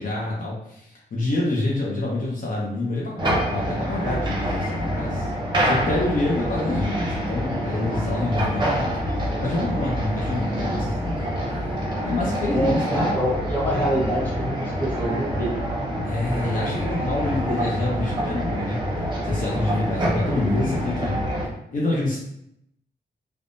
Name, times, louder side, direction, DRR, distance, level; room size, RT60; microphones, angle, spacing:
voice 1, 0.0-5.3 5.6-11.3 12.0-13.2 13.7-13.8 16.0-18.8 19.2-21.2 21.7-22.2, left 2 dB, 50° left, -4 dB, 0.6 m, -27 dB
sound 1, 3.2-21.5, equal, 25° right, 0.6 m, -26 dB
voice 2, 12.5-15.5, equal, 10° left, -6 dB, 1.0 m, -25 dB
3.4 x 2.0 x 2.5 m, 0.78 s
wide cardioid pair, 130°, 17 cm